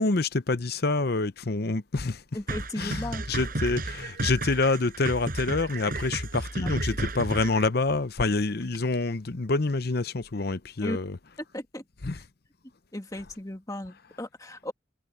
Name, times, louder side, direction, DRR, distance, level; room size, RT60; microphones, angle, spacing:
voice 1, 0.0-2.2 2.8-11.2 12.0-12.2, left 3 dB, 50° left, 0.8 m, -27 dB
voice 2, 2.3-3.4 6.6-6.7 10.8-11.0 11.5-11.8 12.9-14.7, left 1 dB, 15° left, 2.0 m, -36 dB
sound 1, 2.5-7.7, right 2 dB, 45° right, 6.1 m, -33 dB
head